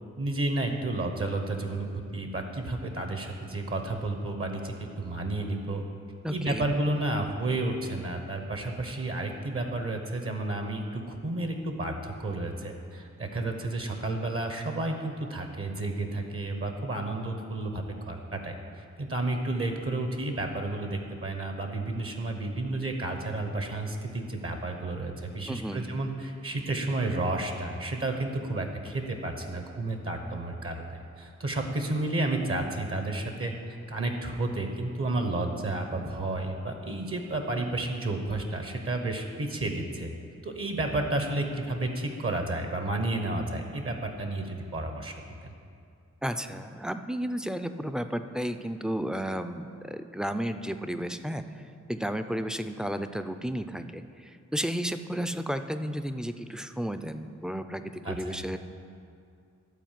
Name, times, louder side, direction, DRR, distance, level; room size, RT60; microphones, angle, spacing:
voice 1, 0.2-5.8 6.3-40.1 40.4-45.1 45.4-45.5 58.0-58.4, right 2 dB, 50° right, 4 dB, 1.0 m, -31 dB
voice 2, 6.2-6.8 25.5-26.1 46.2-58.6, equal, ahead, 8 dB, 0.4 m, -33 dB
12.0 x 4.3 x 7.5 m, 2.4 s
wide cardioid pair, 70°, 29 cm